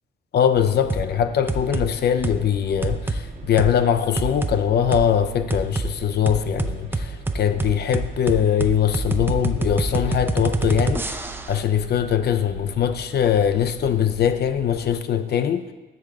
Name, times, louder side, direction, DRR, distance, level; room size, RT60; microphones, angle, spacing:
voice 1, 0.3-15.7, left 8 dB, 55° left, 10 dB, 0.5 m, -22 dB
sound 1, 0.5-15.0, right 6 dB, 70° right, 1.5 m, -40 dB
sound 2, 0.9-1.1 1.5-1.9 2.2-2.4 2.8-3.2 3.6-3.7 4.2-4.6 4.9-5.1 5.5-5.9 6.3-11.6, right 2 dB, 10° right, 0.4 m, -25 dB
7.8 x 3.5 x 6.3 m, 1.1 s
cardioid pair, 90°, 20 cm